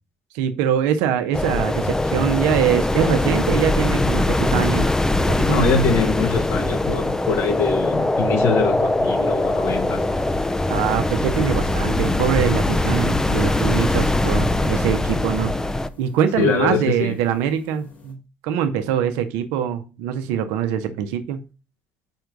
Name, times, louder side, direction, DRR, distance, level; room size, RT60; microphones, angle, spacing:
voice 1, 0.3-4.9 5.3-5.7 10.7-15.6 16.0-21.5, right 9 dB, 75° right, 0.9 m, -23 dB
sound 1, 1.3-15.9, left 2 dB, 10° left, 0.6 m, -21 dB
voice 2, 5.5-10.0 16.3-17.2, left 5 dB, 65° left, 1.4 m, -23 dB
sound 2, 11.9-12.4 12.8-18.1, left 4 dB, 80° left, 2.7 m, -45 dB
sound 3, 16.0-16.3, right 5 dB, 60° right, 1.4 m, -39 dB
5.5 x 4.6 x 5.2 m
hypercardioid pair, 55°, 5 cm